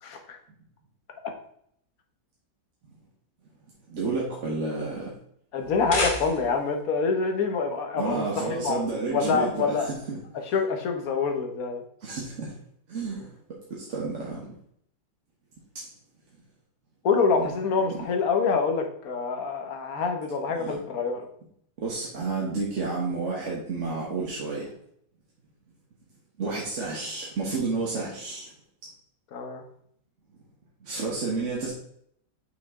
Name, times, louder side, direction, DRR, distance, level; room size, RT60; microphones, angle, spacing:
voice 1, 0.0-0.4 5.5-9.9 10.5-11.8 17.0-21.3 29.3-29.6, left 5 dB, 60° left, 4 dB, 1.4 m, -26 dB
voice 2, 3.9-5.1 8.0-10.2 12.0-12.6 12.9-13.4 13.7-14.5 15.7-15.9 17.4-17.5 20.6-20.8 21.8-24.7 26.4-28.5 30.8-31.7, right 3 dB, 45° right, -4 dB, 1.5 m, -31 dB
sound 1, 5.6-6.7, left 2 dB, 30° left, 1.2 m, -30 dB
6.0 x 5.7 x 3.6 m, 0.69 s
omnidirectional pair, 1.9 m